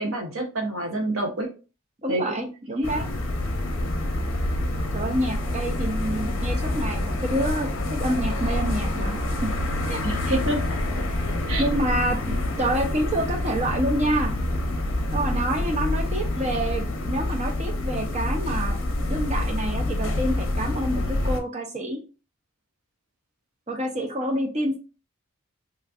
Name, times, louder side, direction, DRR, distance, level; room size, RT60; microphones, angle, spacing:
voice 1, 0.0-1.5 2.1-2.5 2.8-2.9 10.0-10.6 11.2-11.6, right 1 dB, 70° right, 2 dB, 0.9 m, -28 dB
voice 2, 2.0-3.1 4.9-9.2 9.4-9.5 9.9-10.4 11.6-14.3 15.1-18.8 19.1-22.0 23.7-24.8, right 1 dB, 30° right, 2 dB, 0.6 m, -27 dB
sound 1, 2.8-21.4, left 1 dB, 65° left, 0.6 m, -27 dB
3.1 x 2.5 x 2.4 m, 0.33 s
head